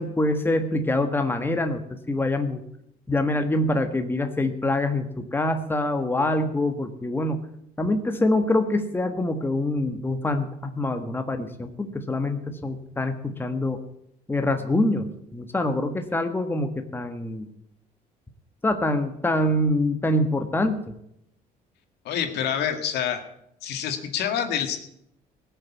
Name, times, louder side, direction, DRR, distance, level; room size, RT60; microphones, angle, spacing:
voice 1, 0.0-2.6 3.1-7.4 7.8-13.8 14.3-17.5 18.6-20.8, left 1 dB, 10° left, 7 dB, 1.4 m, -25 dB
voice 2, 22.1-23.2 23.6-24.8, left 9 dB, 80° left, 6 dB, 1.9 m, -27 dB
18.0 x 6.7 x 8.4 m, 0.76 s
cardioid pair, 110°, 17 cm